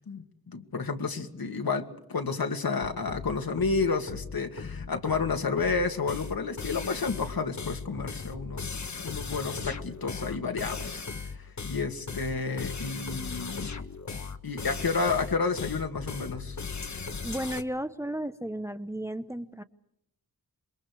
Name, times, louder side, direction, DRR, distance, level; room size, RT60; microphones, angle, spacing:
voice 1, 0.1-13.7 14.4-16.6, left 4 dB, 70° left, 5 dB, 2.3 m, -31 dB
sound 1, 2.8-17.6, left 4 dB, 50° left, 1.4 m, -37 dB
voice 2, 17.2-19.6, right 1 dB, 10° right, 9 dB, 0.9 m, -34 dB
27.5 x 23.5 x 4.9 m, 0.80 s
wide cardioid pair, 100°, 37 cm